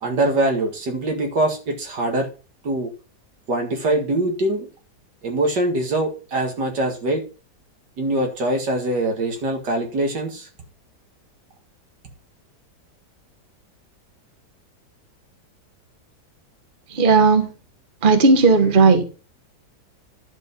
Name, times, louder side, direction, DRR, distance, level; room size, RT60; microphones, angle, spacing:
voice 1, 0.0-2.3 2.6-2.9 3.5-4.7 5.2-7.2 8.0-10.5, right 1 dB, 75° right, 2.6 m, -23 dB
voice 2, 16.9-17.5 18.0-19.1, right 4 dB, 30° right, 1.3 m, -15 dB
11.0 x 5.2 x 5.4 m
omnidirectional pair, 1.9 m